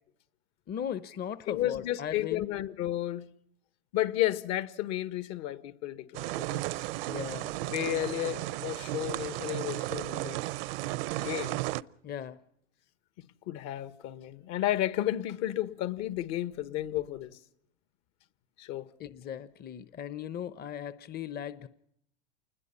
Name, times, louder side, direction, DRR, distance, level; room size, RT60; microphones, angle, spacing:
voice 1, 0.7-2.6 7.1-7.6 12.0-12.4 19.0-21.7, left 9 dB, 30° left, 0.9 m, -38 dB
voice 2, 1.5-3.3 3.9-6.8 7.7-10.4 11.2-11.6 13.2-17.3 18.6-18.9, left 14 dB, 55° left, 1.6 m, -32 dB
sound 1, 6.1-11.8, right 18 dB, 65° right, 0.8 m, -34 dB
28.5 x 21.0 x 5.6 m
hypercardioid pair, 100°, 31 cm